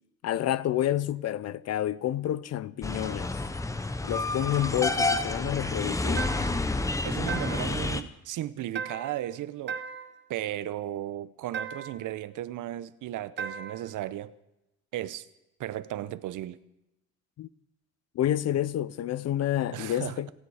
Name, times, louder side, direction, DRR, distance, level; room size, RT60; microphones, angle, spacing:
voice 1, 0.2-3.3 4.0-6.3 17.4-17.5 18.1-20.3, left 12 dB, 55° left, 0.6 m, -29 dB
sound 1, 2.8-8.0, left 2 dB, 10° left, 0.7 m, -29 dB
sound 2, 6.2-6.7 7.3-7.8 8.8-9.3 9.7-10.2 11.5-12.1 13.4-13.9, right 6 dB, 35° right, 1.1 m, -37 dB
voice 2, 7.0-9.8 10.3-14.3 14.9-15.2 15.6-16.6 19.7-20.2, right 13 dB, 80° right, 0.8 m, -35 dB
28.0 x 9.8 x 4.8 m
cardioid pair, 150°, 30 cm